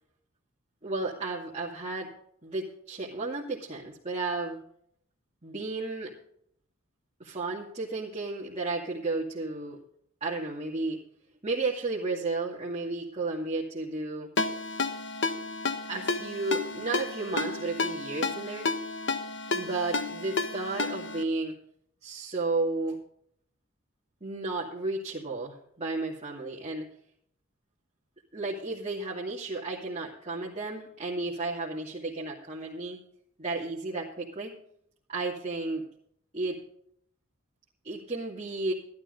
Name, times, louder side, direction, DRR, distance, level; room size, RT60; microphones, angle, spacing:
voice 1, 0.8-2.1 2.4-4.6 5.4-6.1 7.2-9.8 10.2-11.0 11.4-14.3 15.9-18.7 19.5-21.6 22.0-23.0 24.2-26.9 28.3-33.0 33.4-34.5 35.1-35.8 36.3-36.6 37.8-38.7, right 3 dB, 30° right, -5 dB, 2.4 m, -33 dB
Ringtone, 14.4-21.2, left 3 dB, 60° left, 1.2 m, -31 dB
14.0 x 12.0 x 4.0 m, 0.67 s
head